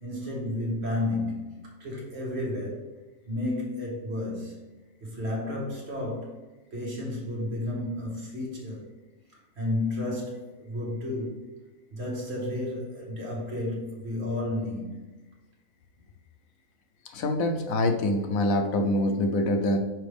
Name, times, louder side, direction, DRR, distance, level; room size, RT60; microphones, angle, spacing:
voice 1, 0.0-2.8 3.3-4.6 5.0-6.4 6.7-8.9 9.6-11.4 11.9-15.0, left 1 dB, 50° right, 1.7 m, -32 dB
voice 2, 17.1-19.8, left 1 dB, 85° left, 1.2 m, -25 dB
6.0 x 5.1 x 3.4 m
omnidirectional pair, 1.4 m